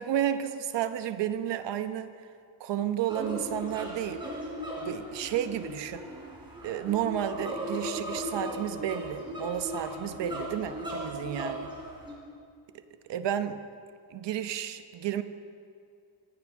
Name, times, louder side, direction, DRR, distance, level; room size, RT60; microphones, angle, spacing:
voice 1, 0.0-2.1 2.6-4.2 4.8-6.0 6.6-11.7 13.1-13.6 14.1-15.2, right 10 dB, 60° right, 10 dB, 1.0 m, -32 dB
sound 1, 3.1-12.1, equal, 10° right, 3.8 m, -37 dB
25.0 x 16.0 x 3.7 m, 2.4 s
cardioid pair, 165°, 48 cm